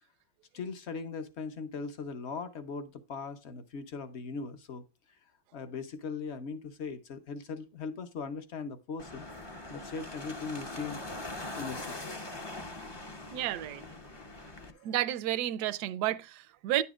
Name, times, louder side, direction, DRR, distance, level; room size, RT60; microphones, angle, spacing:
voice 1, 0.5-4.8 5.5-9.2 9.7-11.0 11.5-12.1 12.4-12.6 13.2-13.3 14.1-14.8, left 4 dB, 50° left, 0.8 m, -40 dB
sound 1, 9.0-14.7, left 2 dB, 30° left, 0.4 m, -42 dB
voice 2, 13.3-13.8 14.8-16.8, right 13 dB, 70° right, 1.1 m, -31 dB
10.5 x 7.1 x 2.4 m
omnidirectional pair, 1.9 m